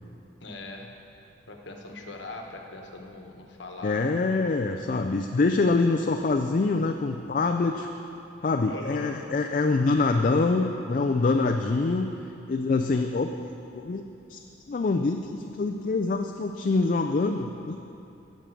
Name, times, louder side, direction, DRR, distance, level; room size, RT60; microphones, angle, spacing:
voice 1, 0.4-0.9 1.5-4.1 8.7-9.2, left 2 dB, 75° left, 2 dB, 1.1 m, -40 dB
voice 2, 3.8-7.9 8.4-12.1 12.5-13.3 13.7-14.0 14.3-14.4 14.7-17.8, left 3 dB, 45° left, 5 dB, 0.3 m, -25 dB
9.0 x 6.5 x 6.9 m, 2.7 s
head